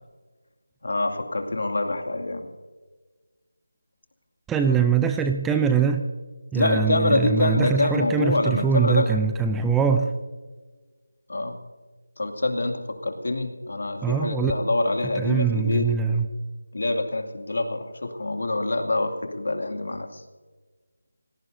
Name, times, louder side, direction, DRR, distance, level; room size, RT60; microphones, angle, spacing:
voice 1, 0.8-2.5 4.7-4.9 6.5-9.2 11.3-11.6 12.2-15.9 16.7-20.2, left 2 dB, 65° left, 4 dB, 2.4 m, -25 dB
voice 2, 4.5-6.1 6.5-10.1 14.0-14.5 15.2-16.3, right 6 dB, 5° right, 6 dB, 0.4 m, -23 dB
26.0 x 17.5 x 2.7 m, 1.3 s
figure-of-eight pair, 170°, 0 cm